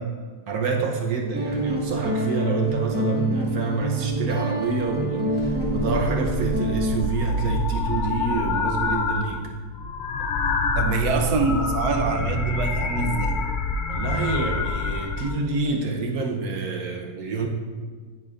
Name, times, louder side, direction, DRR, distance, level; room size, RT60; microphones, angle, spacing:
voice 1, 0.5-9.5 13.9-17.5, right 4 dB, 70° right, 1 dB, 1.4 m, -27 dB
Guitar, 1.3-7.0, right 1 dB, 5° right, 1.0 m, -27 dB
sound 1, 5.3-9.4 9.6-15.3, left 3 dB, 90° left, 0.4 m, -27 dB
voice 2, 10.8-13.3, right 4 dB, 90° right, 5 dB, 1.3 m, -24 dB
9.3 x 8.4 x 2.5 m, 1.5 s
omnidirectional pair, 1.6 m